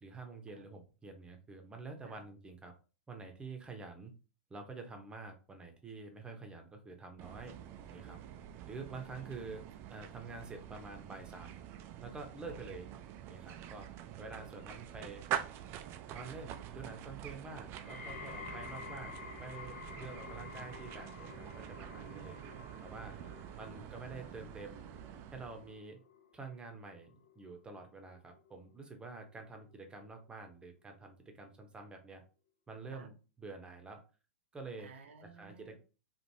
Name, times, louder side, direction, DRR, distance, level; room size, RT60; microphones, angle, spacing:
voice 1, 0.0-2.7 3.1-4.1 4.5-7.6 7.9-8.2 8.7-11.6 12.0-12.9 13.3-13.9 14.2-15.2 16.1-22.4 22.8-23.2 23.6-24.9 25.3-26.0 26.3-32.2 32.7-34.0 34.5-34.9 35.2-35.8, right 3 dB, 15° right, 4 dB, 0.8 m, -48 dB
sound 1, 7.2-25.8, right 10 dB, 35° right, 0.4 m, -46 dB
voice 2, 8.3-9.3 23.1-23.8 32.9-33.1 34.8-35.8, right 5 dB, 70° right, 7 dB, 0.7 m, -58 dB
sound 2, 17.8-29.0 29.3-29.8 30.5-30.6, left 5 dB, 70° left, 0.8 m, -51 dB
3.2 x 2.5 x 2.7 m, 0.34 s
hypercardioid pair, 110°, 7 cm